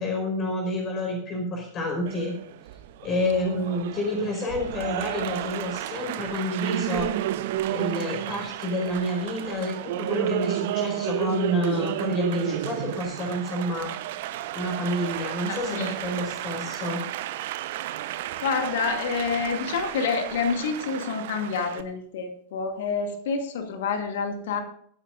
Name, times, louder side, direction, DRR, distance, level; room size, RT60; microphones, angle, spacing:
voice 1, 0.0-2.3 3.0-7.1 7.7-13.9 14.5-17.0, left 1 dB, 30° left, 1 dB, 4.9 m, -29 dB
Applause, 2.1-21.8, right 13 dB, 55° right, 0.9 m, -32 dB
voice 2, 15.4-15.9 18.4-24.6, left 5 dB, 55° left, 5 dB, 2.4 m, -28 dB
24.5 x 10.0 x 2.6 m, 0.65 s
figure-of-eight pair, 90°, 0 cm